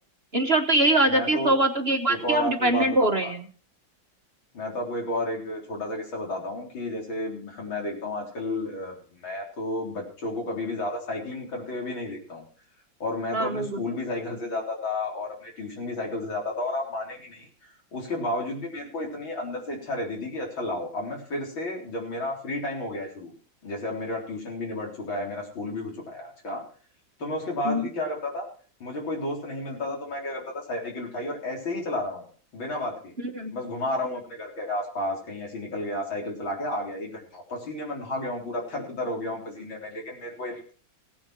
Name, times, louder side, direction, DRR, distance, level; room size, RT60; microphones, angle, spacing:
voice 1, 0.3-3.5 13.3-13.7 27.6-27.9 33.3-33.5, right 1 dB, 40° right, 5 dB, 1.2 m, -23 dB
voice 2, 1.1-1.5 2.1-3.3 4.5-12.4 13.0-17.5 17.9-23.3 23.6-26.7 27.2-28.5 28.8-32.2 32.5-33.1 33.5-40.7, left 1 dB, 85° left, 0 dB, 4.8 m, -32 dB
17.0 x 9.0 x 5.9 m, 0.43 s
omnidirectional pair, 2.1 m